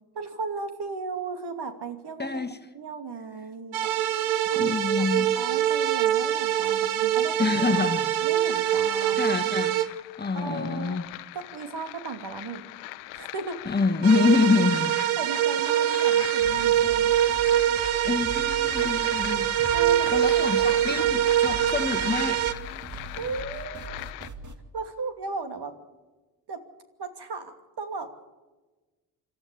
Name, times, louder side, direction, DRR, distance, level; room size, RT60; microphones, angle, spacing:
voice 1, 0.1-2.3 2.7-3.9 4.5-7.8 8.2-9.4 10.3-11.0 11.3-12.7 13.1-13.6 15.2-17.1 19.7-21.1 22.9-24.1 24.7-25.7 26.5-26.6 27.0-28.3, right 4 dB, 55° right, 2.7 m, -36 dB
voice 2, 2.2-2.6 4.6-5.3 7.4-8.0 9.1-9.8 10.2-11.0 13.6-14.9 18.0-19.5 20.1-22.4, left 4 dB, 20° left, 1.5 m, -26 dB
sound 1, 3.7-9.9 14.0-22.5, right 11 dB, 75° right, 1.1 m, -24 dB
sound 2, 6.9-24.3, left 18 dB, 85° left, 0.9 m, -41 dB
sound 3, 16.4-24.5, right 2 dB, 40° right, 2.4 m, -41 dB
27.0 x 13.0 x 8.3 m
hypercardioid pair, 45°, 47 cm